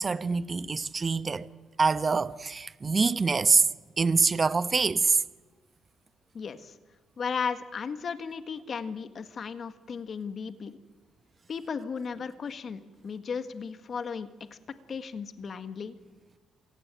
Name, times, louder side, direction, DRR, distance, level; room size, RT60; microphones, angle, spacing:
voice 1, 0.0-1.5 1.8-3.7 4.0-5.2, right 4 dB, 35° right, 1.0 m, -25 dB
voice 2, 6.3-6.8 7.2-10.8 11.5-14.6 14.9-15.9, left 6 dB, 50° left, 1.7 m, -35 dB
27.0 x 17.5 x 9.2 m
cardioid pair, 90°, 0 cm